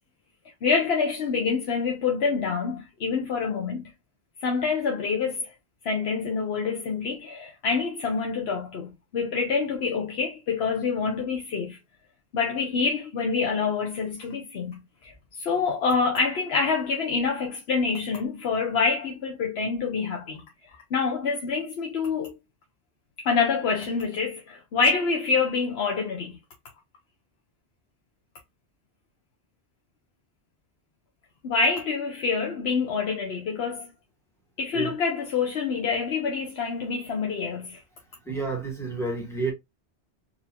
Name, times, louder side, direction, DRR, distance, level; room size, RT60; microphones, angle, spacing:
voice 1, 0.6-3.9 4.4-5.5 5.8-11.8 12.3-15.1 15.4-20.4 20.9-22.3 23.2-26.4 31.4-33.9 34.6-37.8, left 5 dB, 70° left, 1.0 m, -26 dB
voice 2, 38.3-39.5, right 3 dB, 5° left, 1.4 m, -29 dB
4.4 x 2.7 x 2.8 m
omnidirectional pair, 1.1 m